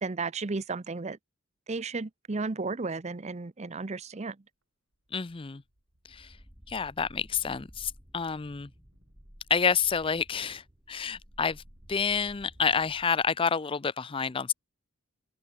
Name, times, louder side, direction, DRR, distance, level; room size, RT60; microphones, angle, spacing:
voice 1, 0.0-1.2 1.7-4.4, right 3 dB, 30° right, 0.6 m, -33 dB
sound 1, 4.4-4.6 4.9-13.4, right 1 dB, 65° right, 4.0 m, -66 dB
voice 2, 5.1-5.6 6.1-6.3 6.7-8.7 9.5-11.6 11.9-14.5, left 6 dB, 25° left, 0.5 m, -29 dB
sound 2, 6.1-13.1, equal, 10° right, 2.5 m, -54 dB
open air
head